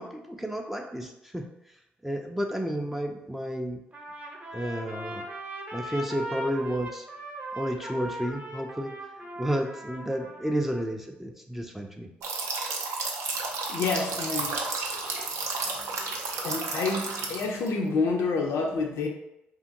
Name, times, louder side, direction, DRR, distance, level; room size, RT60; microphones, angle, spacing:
voice 1, 0.0-1.5 2.0-3.8 4.5-5.3 5.7-7.1 7.5-8.9 9.4-12.1, equal, 5° right, 3 dB, 0.4 m, -31 dB
Trumpet, 3.9-10.8, right 1 dB, 30° right, 0.7 m, -39 dB
sound 1, 12.2-17.7, right 3 dB, 70° right, 0.4 m, -32 dB
voice 2, 13.7-14.6 15.7-15.8 16.4-19.1, left 4 dB, 65° left, 1 dB, 0.4 m, -28 dB
2.7 x 2.5 x 2.6 m, 0.87 s
hypercardioid pair, 45°, 5 cm